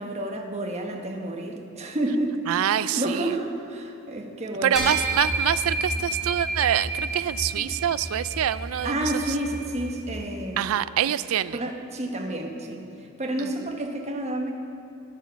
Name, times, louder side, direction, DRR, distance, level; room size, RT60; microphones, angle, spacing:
voice 1, 0.0-5.0 7.6-7.7 8.8-10.8 11.5-12.9 13.2-14.5, right 1 dB, 30° right, 2 dB, 1.1 m, -30 dB
voice 2, 2.5-3.3 4.6-9.1 10.6-11.6 13.4-13.5, right 10 dB, 80° right, 16 dB, 0.3 m, -25 dB
sound 1, 4.8-10.4, right 2 dB, ahead, 3.4 m, -30 dB
12.5 x 9.3 x 6.2 m, 2.7 s
head